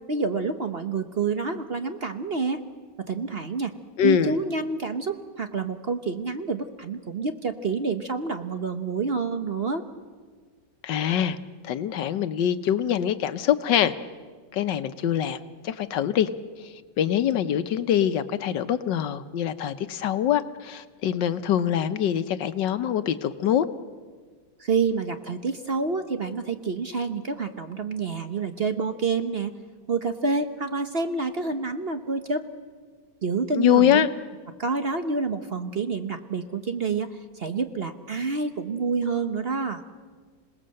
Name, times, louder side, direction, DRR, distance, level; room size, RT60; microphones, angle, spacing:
voice 1, 0.1-2.6 3.1-3.7 4.0-9.8 24.6-29.5 29.9-32.5 33.2-34.1 34.6-39.8, right 4 dB, 40° right, 8 dB, 1.0 m, -28 dB
voice 2, 4.0-4.3 10.8-11.4 11.6-13.9 14.5-16.3 16.6-23.7 33.6-34.1, left 10 dB, 80° left, 12 dB, 1.5 m, -24 dB
27.0 x 19.0 x 7.7 m, 1.5 s
omnidirectional pair, 2.0 m